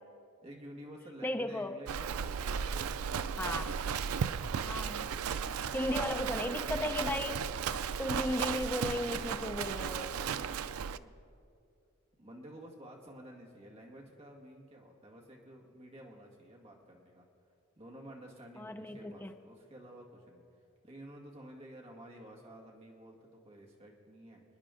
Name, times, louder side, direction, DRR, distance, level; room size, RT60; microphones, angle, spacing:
voice 1, 0.4-3.7 5.6-7.5 10.6-11.1 12.2-17.3 17.8-20.4 20.8-24.4, right 1 dB, 30° right, -1 dB, 2.0 m, -52 dB
voice 2, 1.2-1.7 3.4-3.7 4.7-5.1 5.7-7.4 8.0-10.1 18.6-19.3, left 1 dB, 10° left, 6 dB, 0.6 m, -35 dB
Livestock farm animals working animals, 1.9-11.0, right 7 dB, 90° right, 0.4 m, -35 dB
27.0 x 9.9 x 3.8 m, 2.5 s
head